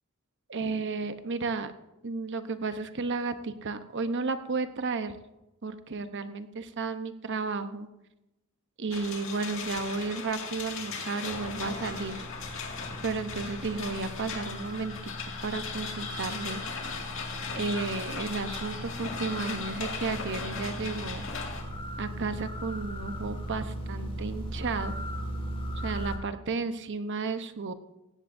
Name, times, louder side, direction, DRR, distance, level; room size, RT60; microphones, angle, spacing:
voice 1, 0.5-1.7 2.0-5.2 5.6-7.9 8.8-12.2 13.0-16.6 17.5-21.3 22.0-25.0 25.8-27.7, right 4 dB, 55° right, 10 dB, 0.8 m, -33 dB
sound 1, 8.9-21.6, left 5 dB, 65° left, 2.0 m, -38 dB
sound 2, 11.3-26.2, equal, 25° left, 1.8 m, -39 dB
17.5 x 15.5 x 2.6 m, 0.98 s
head